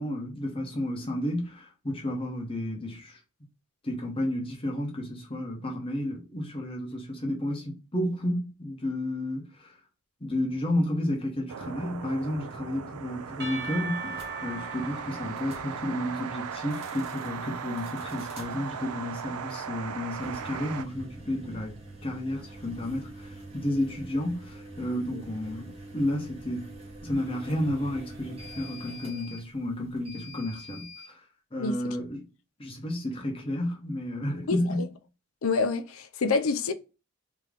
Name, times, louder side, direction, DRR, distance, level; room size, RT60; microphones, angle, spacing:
voice 1, 0.0-3.2 3.8-9.7 10.2-21.8 22.0-26.7 27.0-31.2 31.5-32.3 32.6-34.9, left 1 dB, 25° left, 1.0 m, -32 dB
sound 1, 11.5-20.8, right 6 dB, 90° right, 0.4 m, -38 dB
Percussion / Church bell, 13.4-17.3, right 4 dB, 50° right, 1.1 m, -40 dB
sound 2, 14.1-14.3 15.3-15.7 16.6-17.3 17.8-18.5 20.1-31.1, right 1 dB, 25° right, 1.1 m, -45 dB
voice 2, 31.6-32.0 34.5-34.9 35.4-36.7, left 4 dB, 75° left, 0.5 m, -28 dB
3.6 x 3.0 x 3.3 m
head